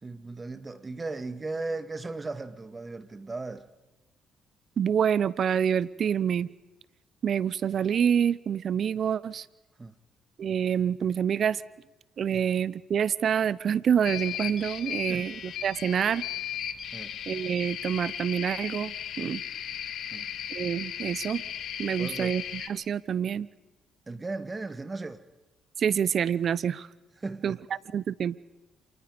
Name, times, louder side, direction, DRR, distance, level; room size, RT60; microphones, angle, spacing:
voice 1, 0.0-3.7 9.8-9.9 12.3-12.5 15.1-15.3 16.9-17.2 20.1-20.3 22.0-22.4 24.1-25.2 27.2-27.6, right 3 dB, 30° right, 1.9 m, -37 dB
voice 2, 4.8-6.5 7.2-9.5 10.4-11.6 12.2-15.3 15.6-16.2 17.3-19.4 20.5-21.4 21.8-23.5 25.8-26.9 27.4-27.6 27.9-28.4, right 8 dB, 60° right, 0.8 m, -27 dB
sound 1, 14.0-22.7, left 9 dB, 70° left, 2.0 m, -36 dB
29.0 x 28.0 x 5.3 m
hypercardioid pair, 55°, 0 cm